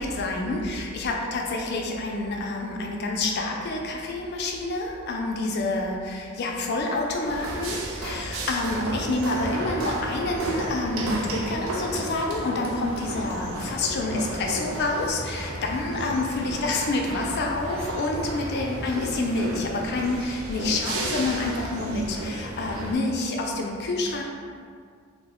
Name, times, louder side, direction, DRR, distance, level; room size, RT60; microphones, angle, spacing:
voice 1, 0.0-24.2, left 2 dB, 50° left, 1 dB, 0.4 m, -28 dB
sound 1, 7.2-22.9, right 1 dB, 85° right, 0.4 m, -33 dB
2.5 x 2.1 x 3.5 m, 2.1 s
head